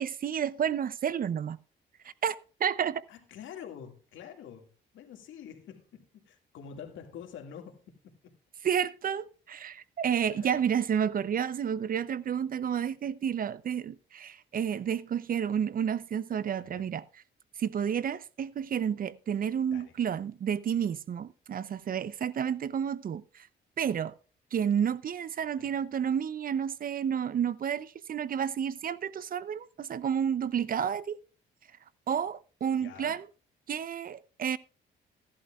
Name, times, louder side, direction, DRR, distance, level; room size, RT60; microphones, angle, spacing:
voice 1, 0.0-1.6 2.0-3.0 8.6-17.0 17.6-23.5 23.8-24.2 24.5-31.2 32.1-33.3 33.7-34.6, right 8 dB, 45° right, 0.6 m, -30 dB
voice 2, 3.1-8.4 10.3-10.6 16.6-16.9 19.7-20.0 25.5-25.7 32.8-33.2, left 8 dB, 80° left, 2.1 m, -47 dB
15.5 x 11.5 x 2.4 m
cardioid pair, 90°, 20 cm